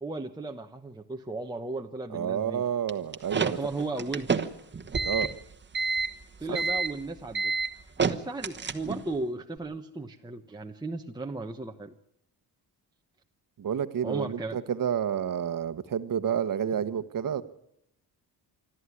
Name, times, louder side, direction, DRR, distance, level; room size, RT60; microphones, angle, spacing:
voice 1, 0.0-2.6 3.3-4.4 6.4-7.5 8.0-11.9 14.0-14.6, right 2 dB, 10° right, 2 dB, 1.0 m, -35 dB
voice 2, 2.1-3.6 5.0-5.3 6.5-6.6 13.6-17.4, right 8 dB, 50° right, 13 dB, 1.2 m, -29 dB
sound 1, 2.9-9.1, right 5 dB, 25° right, 1.3 m, -29 dB
26.5 x 13.0 x 9.8 m, 0.77 s
wide cardioid pair, 140°, 41 cm